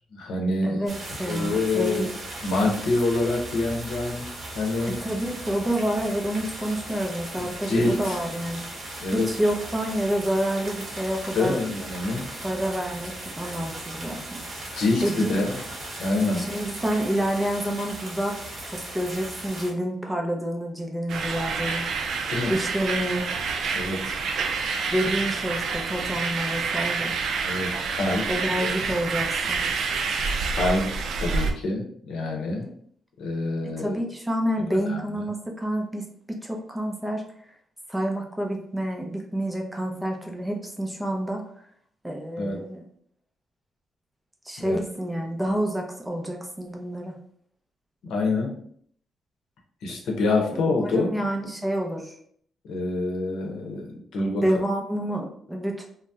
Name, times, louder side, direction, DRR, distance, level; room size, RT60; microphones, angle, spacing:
voice 1, 0.1-0.8 1.2-2.0 2.4-4.3 4.5-5.0 7.3-8.2 9.0-9.3 11.3-12.3 14.8-15.6 16.0-16.5 22.3-22.5 23.7-24.2 27.4-28.3 28.6-28.7 30.6-30.9 31.2-32.7 33.2-34.0 34.7-35.2 42.4-42.6 44.6-44.8 48.0-48.5 49.8-51.1 52.7-54.4, left 2 dB, 85° left, 1 dB, 0.7 m, -26 dB
voice 2, 0.6-0.9 1.2-2.1 4.9-8.7 9.1-11.6 12.4-14.4 15.0-15.3 16.4-18.4 18.7-21.9 22.5-23.3 24.9-27.1 28.3-29.7 32.6-32.7 33.6-37.2 37.9-41.4 42.0-42.9 44.5-47.2 50.8-52.2 54.4-55.9, equal, 5° right, 1 dB, 0.4 m, -28 dB
sound 1, 0.9-19.7, right 1 dB, 40° right, 0.9 m, -38 dB
sound 2, 21.1-31.5, right 5 dB, 65° right, 0.3 m, -28 dB
2.7 x 2.0 x 3.4 m, 0.62 s
cardioid pair, 155°, 0 cm